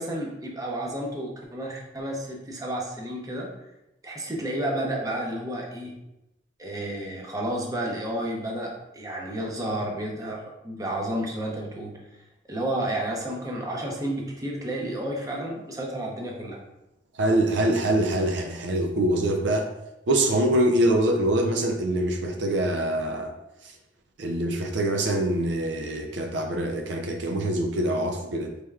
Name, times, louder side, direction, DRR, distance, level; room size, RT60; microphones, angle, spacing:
voice 1, 0.0-3.5 4.0-5.9 6.6-11.9 12.5-16.6, right 1 dB, 20° right, -1 dB, 0.7 m, -31 dB
voice 2, 17.1-19.7 20.1-23.3 23.6-23.8 24.2-28.5, right 1 dB, 75° right, 3 dB, 0.5 m, -24 dB
4.2 x 3.3 x 2.4 m, 0.89 s
head